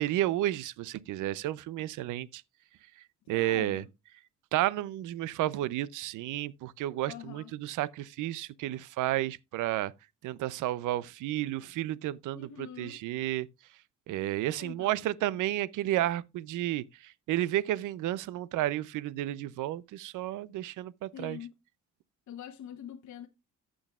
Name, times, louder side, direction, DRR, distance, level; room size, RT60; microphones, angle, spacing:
voice 1, 0.0-2.4 3.3-3.8 4.5-9.9 10.2-13.5 14.1-21.4, right 14 dB, 85° right, 0.6 m, -32 dB
voice 2, 3.3-3.9 7.1-7.5 12.3-13.0 14.5-15.0 21.1-21.5 22.3-23.3, left 9 dB, 70° left, 1.1 m, -44 dB
15.0 x 6.3 x 2.3 m
cardioid pair, 90°, 30 cm